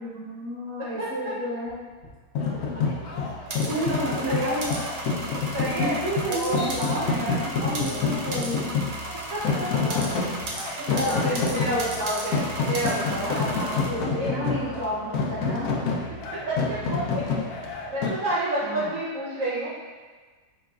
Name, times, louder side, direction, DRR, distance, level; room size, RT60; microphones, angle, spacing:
voice 1, 0.0-1.9 3.6-5.0 5.8-8.7 9.7-10.4 10.8-12.2 13.4-15.7 18.6-18.9, equal, 15° right, -9 dB, 1.0 m, -31 dB
voice 2, 1.0-1.3 2.5-2.6 3.7-4.6 5.3-6.7 7.0-7.2 7.7-8.3 9.3-10.5 10.9-13.5 14.2-14.3 16.3-17.5 17.9-19.7, right 1 dB, 65° right, -8 dB, 1.0 m, -31 dB
sound 1, 1.7-8.4 8.7-11.7, right 1 dB, 50° left, 1.0 m, -52 dB
sound 2, 2.3-18.1, left 4 dB, 75° left, 1.0 m, -28 dB
sound 3, 3.5-13.9, right 1 dB, 90° right, 0.4 m, -36 dB
5.0 x 3.1 x 2.3 m, 1.4 s
omnidirectional pair, 1.7 m